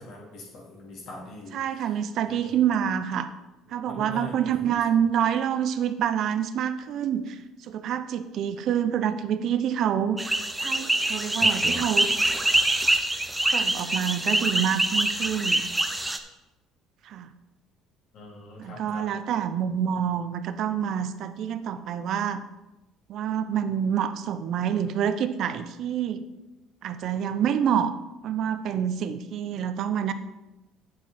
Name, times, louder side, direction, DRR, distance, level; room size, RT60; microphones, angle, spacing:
voice 1, 0.0-2.0 2.3-2.6 3.9-4.3 4.6-5.0 18.1-19.1, left 1 dB, 65° left, -3 dB, 3.6 m, -42 dB
voice 2, 1.5-3.3 3.7-10.3 10.6-12.1 13.5-15.6 17.0-17.3 18.6-22.4 23.1-26.2 26.8-27.9 28.2-30.1, right 9 dB, 55° right, 11 dB, 0.6 m, -27 dB
sound 1, 10.2-16.2, right 1 dB, 10° right, 0.7 m, -25 dB
8.8 x 7.6 x 4.3 m, 1.0 s
cardioid pair, 120°, 0 cm